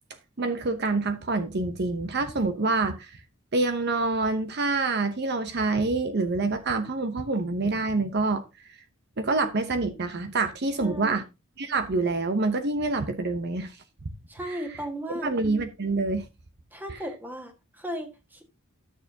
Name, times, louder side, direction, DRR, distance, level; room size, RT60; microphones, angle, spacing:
voice 1, 0.4-3.2 3.5-8.4 9.2-11.2 11.6-13.8 14.5-14.6 15.2-16.3, right 3 dB, 50° right, 0.8 m, -26 dB
voice 2, 10.8-11.2 14.3-15.3 16.7-18.4, equal, 10° right, 1.5 m, -36 dB
12.5 x 6.8 x 2.8 m
head